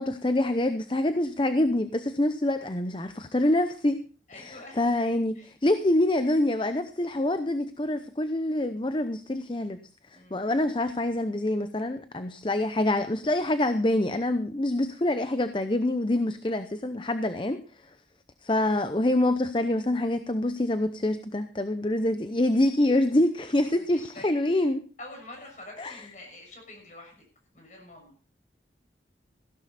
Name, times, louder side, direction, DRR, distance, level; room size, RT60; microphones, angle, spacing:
voice 1, 0.0-4.1 4.4-9.8 10.1-17.6 18.4-24.9 25.8-26.0, left 1 dB, 30° left, 10 dB, 0.7 m, -26 dB
voice 2, 4.3-4.9 5.3-5.5 10.1-10.5 16.1-16.4 23.7-24.7 25.0-27.2 27.5-28.1, left 2 dB, 45° left, 2 dB, 6.4 m, -47 dB
16.0 x 12.0 x 4.2 m, 0.37 s
head